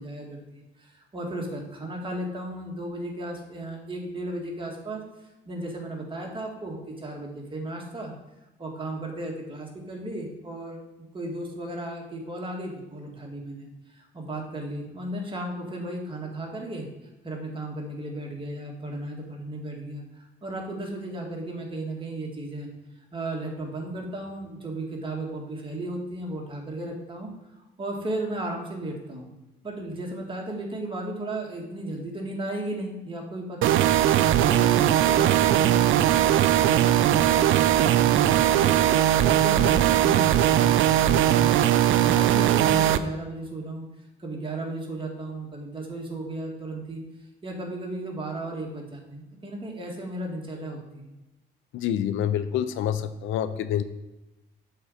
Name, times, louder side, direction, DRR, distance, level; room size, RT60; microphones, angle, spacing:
voice 1, 0.0-5.0 5.5-8.1 8.6-10.8 11.1-16.9 17.2-22.7 23.1-27.3 27.6-29.3 29.6-38.8 39.2-43.8 44.2-47.0 47.4-51.1, right 1 dB, 25° right, -1 dB, 1.9 m, -35 dB
sound 1, 33.6-43.0, right 11 dB, 80° right, 0.4 m, -20 dB
voice 2, 51.7-53.8, left 10 dB, 85° left, 12 dB, 0.5 m, -27 dB
7.2 x 4.0 x 4.9 m, 1.0 s
cardioid pair, 90°, 20 cm